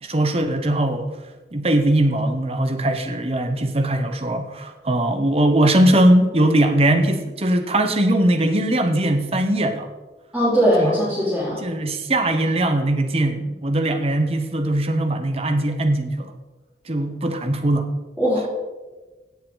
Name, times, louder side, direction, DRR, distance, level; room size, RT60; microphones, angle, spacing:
voice 1, 0.0-1.1 1.5-9.9 10.8-10.9 11.6-16.3 16.9-17.9, right 1 dB, 35° right, 7 dB, 1.0 m, -20 dB
voice 2, 10.3-11.6 18.2-18.5, equal, 5° right, -12 dB, 4.1 m, -20 dB
16.5 x 7.5 x 3.9 m, 1.2 s
head